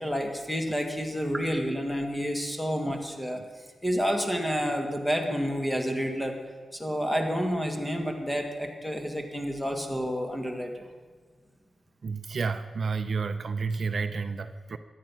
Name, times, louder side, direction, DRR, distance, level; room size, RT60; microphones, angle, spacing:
voice 1, 0.0-3.4 3.8-6.4 6.7-10.9, equal, 5° left, 4 dB, 1.9 m, -29 dB
voice 2, 12.0-14.8, right 4 dB, 60° right, 10 dB, 0.6 m, -30 dB
14.0 x 10.0 x 6.1 m, 1.5 s
cardioid pair, 80°, 0 cm